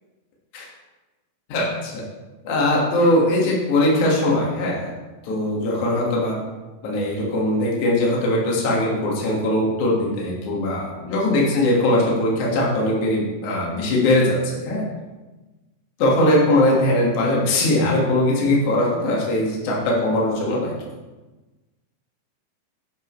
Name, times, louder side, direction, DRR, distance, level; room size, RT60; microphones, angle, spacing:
voice 1, 1.5-2.0 2.4-4.9 5.2-6.4 6.8-14.8 16.0-20.7, left 1 dB, 60° left, -4 dB, 2.8 m, -20 dB
10.0 x 8.5 x 3.1 m, 1.2 s
omnidirectional pair, 4.4 m